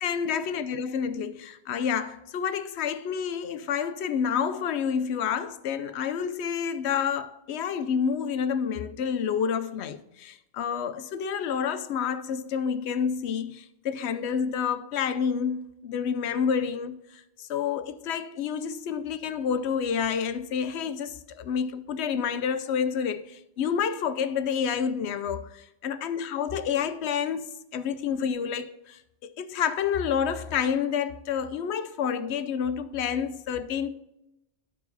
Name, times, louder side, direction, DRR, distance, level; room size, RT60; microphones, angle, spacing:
voice 1, 0.0-27.5 27.7-33.9, left 7 dB, 90° left, 0.9 m, -29 dB
12.0 x 4.8 x 4.0 m
omnidirectional pair, 1.1 m